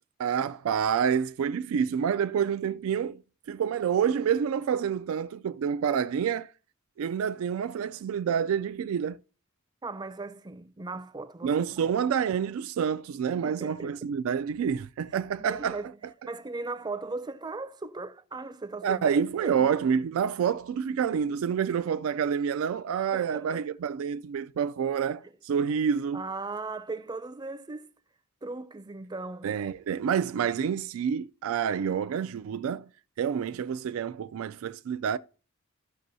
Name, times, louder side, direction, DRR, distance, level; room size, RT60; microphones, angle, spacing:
voice 1, 0.2-3.2 3.5-6.5 7.0-9.2 11.4-15.8 18.8-26.2 29.4-32.9 33.2-35.2, right 7 dB, 80° right, 0.3 m, -28 dB
voice 2, 9.8-11.9 13.4-14.0 15.4-15.9 16.2-19.7 23.1-23.6 26.1-27.9 28.4-29.5, right 3 dB, 20° right, 0.5 m, -38 dB
14.0 x 6.0 x 2.7 m
head